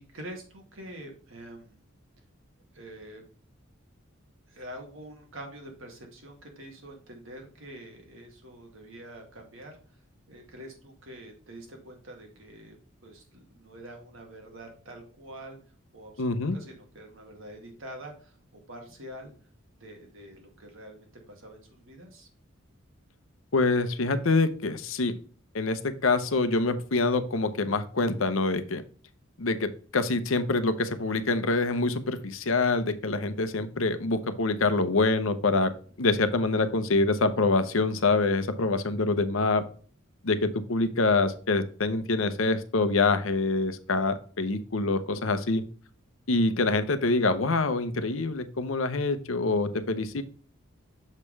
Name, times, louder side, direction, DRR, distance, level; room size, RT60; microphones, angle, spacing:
voice 1, 0.0-1.8 2.7-3.2 4.5-9.8 10.3-12.8 13.0-15.6 15.9-18.4 18.7-19.3 19.8-22.3, right 1 dB, 70° right, 2 dB, 2.1 m, -45 dB
voice 2, 16.2-16.6 23.5-25.2 25.5-28.8 29.4-35.7 36.0-39.6 40.2-45.6 46.3-50.2, left 3 dB, 70° left, 11 dB, 0.8 m, -25 dB
6.6 x 5.3 x 3.2 m, 0.43 s
head